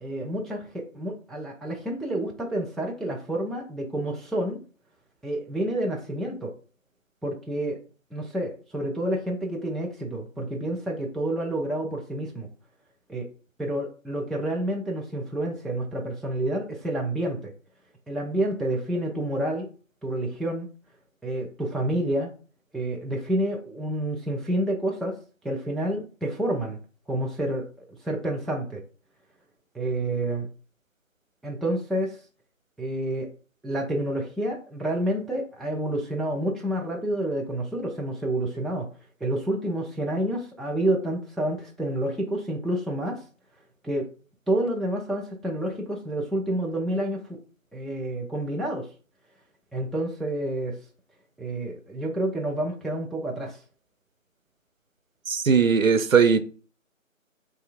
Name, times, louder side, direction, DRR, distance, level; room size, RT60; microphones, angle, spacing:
voice 1, 0.0-4.6 5.2-6.5 7.2-7.8 8.1-12.5 13.1-13.3 13.6-17.5 18.1-19.7 20.0-20.7 21.2-22.3 22.7-25.2 25.4-26.8 27.1-28.8 29.7-30.5 31.4-32.2 32.8-33.3 33.6-38.9 39.2-43.2 43.8-44.1 44.5-47.3 47.7-48.9 49.7-50.8 51.4-53.6, right 1 dB, ahead, 0.4 m, -29 dB
voice 2, 55.3-56.4, right 6 dB, 75° right, 0.6 m, -19 dB
3.2 x 2.7 x 4.0 m
figure-of-eight pair, 180°, 40 cm